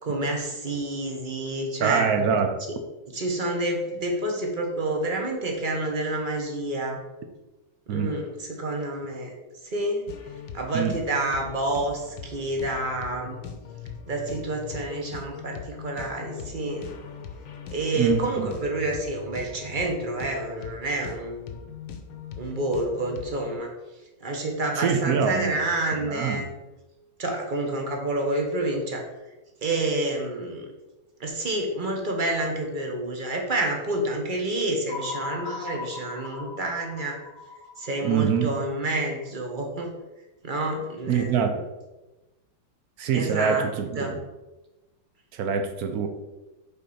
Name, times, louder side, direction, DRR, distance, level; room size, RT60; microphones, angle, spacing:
voice 1, 0.0-2.0 3.1-7.0 7.9-9.3 9.7-10.0 10.5-13.4 14.1-16.9 17.7-21.5 22.4-23.7 24.2-26.5 27.2-29.1 29.6-30.7 31.2-37.2 37.8-39.9 40.4-41.5 43.1-43.7 44.0-44.2, right 2 dB, 45° right, 1 dB, 0.6 m, -28 dB
voice 2, 1.8-2.6 7.9-8.1 10.7-11.0 18.0-18.5 24.7-25.5 25.9-26.5 38.0-38.6 41.1-41.6 43.0-44.2 45.3-46.1, right 7 dB, 70° right, 6 dB, 0.8 m, -25 dB
sound 1, 10.1-23.6, left 6 dB, 75° left, 1.6 m, -41 dB
sound 2, 34.9-39.1, left 4 dB, 50° left, 1.2 m, -39 dB
6.8 x 4.3 x 4.9 m, 1.1 s
omnidirectional pair, 2.3 m